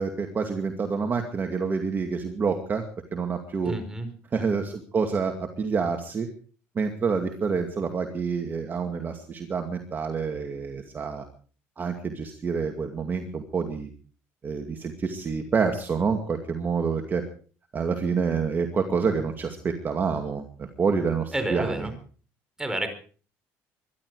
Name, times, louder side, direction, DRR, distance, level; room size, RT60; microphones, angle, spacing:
voice 1, 0.0-2.9 3.1-3.7 4.3-6.3 6.8-11.2 11.8-13.9 14.4-17.2 17.7-20.4 20.8-21.9, right 5 dB, 35° right, 5 dB, 2.3 m, -27 dB
voice 2, 3.7-4.1 21.3-21.9 22.6-22.9, right 1 dB, 10° right, 7 dB, 4.8 m, -29 dB
22.5 x 12.0 x 4.9 m, 0.41 s
cardioid pair, 100°, 6 cm